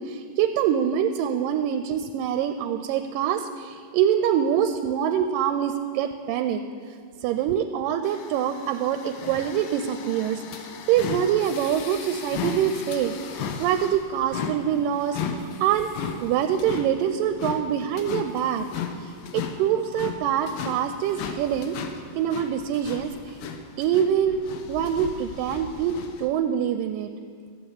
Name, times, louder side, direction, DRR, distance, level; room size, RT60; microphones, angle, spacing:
voice 1, 0.0-6.6 7.2-13.1 13.6-15.9 16.2-18.7 19.0-21.8 22.1-23.4 23.8-24.4 24.7-27.1, right 9 dB, 85° right, 9 dB, 2.2 m, -25 dB
sound 1, 8.0-26.3, left 6 dB, 80° left, 2.6 m, -36 dB
14.0 x 9.4 x 7.1 m, 2.1 s
omnidirectional pair, 4.0 m